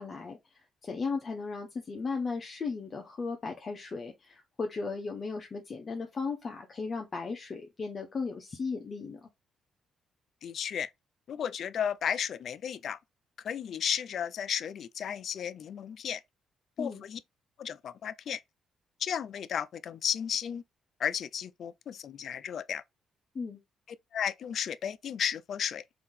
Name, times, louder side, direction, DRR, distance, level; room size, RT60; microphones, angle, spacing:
voice 1, 0.0-9.3 16.8-17.0 23.3-23.6, left 4 dB, 40° left, 0.8 m, -36 dB
voice 2, 10.4-10.9 11.3-13.0 13.4-16.2 16.8-17.2 17.6-18.4 19.0-20.6 21.0-22.8 24.1-25.8, left 8 dB, 60° left, 0.3 m, -34 dB
3.3 x 2.7 x 3.7 m
cardioid pair, 90°, 0 cm